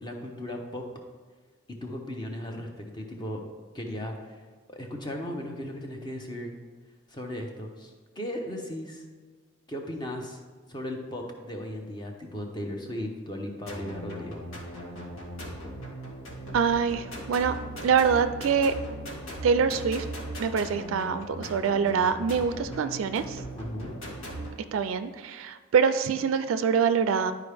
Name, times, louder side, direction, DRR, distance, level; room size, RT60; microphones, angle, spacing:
voice 1, 0.0-0.9 1.7-3.4 3.7-4.4 4.7-6.6 7.1-9.0 9.7-10.4 10.7-14.4 23.5-23.9, left 1 dB, 20° left, 2 dB, 0.8 m, -36 dB
sound 1, 13.7-24.5, right 1 dB, 85° left, 1.8 m, -39 dB
voice 2, 16.5-17.6 17.8-18.7 19.4-20.1 20.4-23.4 24.7-27.3, right 6 dB, 80° right, 11 dB, 0.4 m, -25 dB
11.0 x 4.7 x 3.4 m, 1.4 s
head